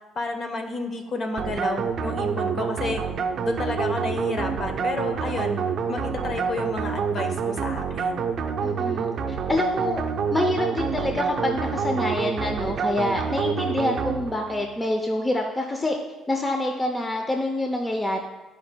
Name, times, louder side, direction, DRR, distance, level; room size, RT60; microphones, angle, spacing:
voice 1, 0.2-3.0 3.4-5.6 5.9-8.2, left 3 dB, 40° left, 5 dB, 0.8 m, -31 dB
sound 1, 1.4-14.7, right 6 dB, 55° right, 0.5 m, -27 dB
voice 2, 8.6-10.0 10.3-16.0 16.3-18.2, left 1 dB, 15° left, 3 dB, 0.5 m, -26 dB
11.5 x 5.0 x 2.2 m, 1.1 s
cardioid pair, 115°, 0 cm